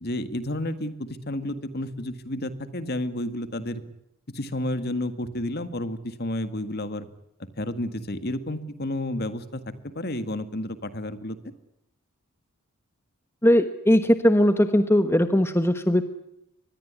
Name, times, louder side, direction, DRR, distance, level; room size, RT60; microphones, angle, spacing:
voice 1, 0.0-3.8 4.3-7.1 7.6-11.4, left 1 dB, 45° left, 11 dB, 1.9 m, -31 dB
voice 2, 13.4-16.0, equal, 10° left, 9 dB, 1.1 m, -19 dB
24.5 x 20.5 x 9.7 m, 0.82 s
head